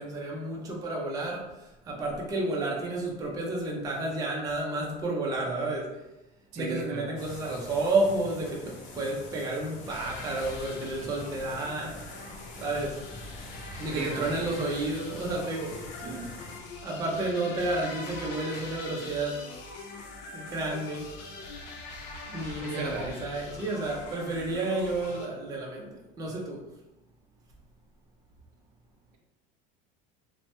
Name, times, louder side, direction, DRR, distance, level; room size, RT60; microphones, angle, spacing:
voice 1, 0.0-1.4 1.9-5.9 6.6-11.9 12.6-13.0 13.8-15.7 16.0-16.2 16.8-19.4 20.3-21.1 22.3-25.9 26.2-26.6, right 2 dB, 15° right, -2 dB, 0.4 m, -31 dB
voice 2, 6.5-7.2 13.9-14.4 22.6-23.1, right 3 dB, 85° right, 1 dB, 0.7 m, -35 dB
Water Wheel, 7.2-16.6, left 2 dB, 40° left, 0.6 m, -45 dB
sound 1, 9.9-25.3, left 3 dB, 85° left, 0.6 m, -43 dB
3.1 x 2.1 x 2.8 m, 0.97 s
cardioid pair, 155°, 21 cm